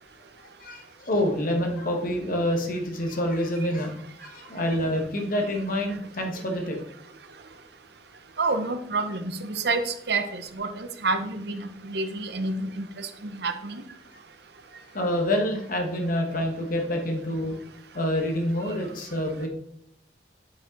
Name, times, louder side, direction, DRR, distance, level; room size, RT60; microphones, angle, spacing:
voice 1, 0.6-6.8 14.1-14.2 14.7-17.6 17.9-19.5, left 1 dB, 55° left, 2 dB, 1.3 m, -27 dB
voice 2, 8.4-13.8, right 3 dB, 65° right, 8 dB, 0.8 m, -29 dB
8.5 x 5.1 x 3.9 m, 0.74 s
head